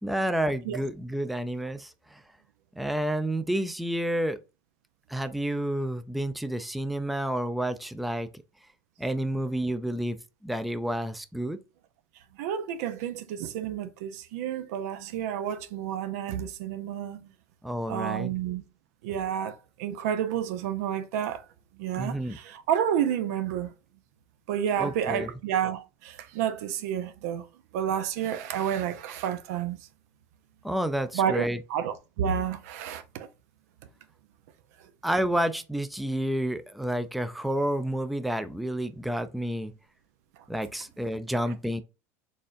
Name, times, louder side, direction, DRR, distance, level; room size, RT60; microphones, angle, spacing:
voice 1, 0.0-2.2 2.8-4.4 5.1-8.4 9.0-10.2 10.4-11.6 17.6-18.3 22.0-22.4 24.8-25.3 30.6-31.6 35.0-39.7 40.5-41.8, right 1 dB, ahead, 0.4 m, -30 dB
voice 2, 12.4-17.3 17.9-18.6 19.0-21.4 21.8-23.7 24.5-27.5 27.7-29.8 31.1-31.4 31.7-33.3, right 9 dB, 75° right, 0.6 m, -30 dB
4.2 x 3.4 x 2.6 m
supercardioid pair, 105°, 8 cm